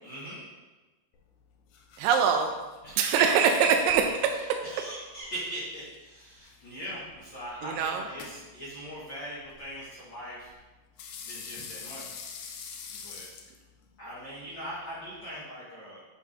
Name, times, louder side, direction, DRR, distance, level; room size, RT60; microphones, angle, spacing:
voice 1, 0.0-0.4 2.8-3.1 3.6-3.7 4.6-10.5 11.2-12.1 12.9-13.3 14.0-16.1, equal, 40° left, -11 dB, 2.3 m, -41 dB
sound 1, 1.1-15.4, left 6 dB, 75° left, 1.9 m, -48 dB
voice 2, 2.0-2.5 3.0-4.0 7.6-8.0, right 7 dB, 80° right, 4 dB, 2.2 m, -23 dB
9.3 x 6.0 x 2.8 m, 1.2 s
omnidirectional pair, 4.0 m